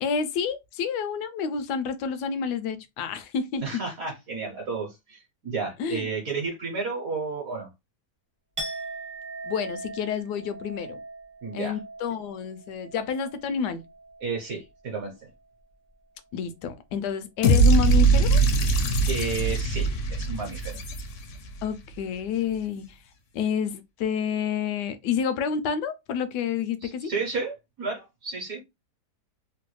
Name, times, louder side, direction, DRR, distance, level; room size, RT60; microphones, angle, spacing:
voice 1, 0.0-3.6 5.8-6.1 9.4-11.0 11.5-13.8 16.3-18.4 21.6-22.8 23.3-27.1, left 7 dB, 80° left, 1.1 m, -29 dB
voice 2, 3.6-7.7 11.4-11.8 14.2-15.1 19.1-20.8 26.8-28.6, right 4 dB, 60° right, 1.1 m, -32 dB
Chink clink, 8.6-14.5 14.8-15.2, right 2 dB, 35° right, 0.5 m, -40 dB
sound 1, 17.4-21.5, right 3 dB, 60° left, 0.8 m, -21 dB
3.2 x 2.2 x 3.0 m
omnidirectional pair, 1.8 m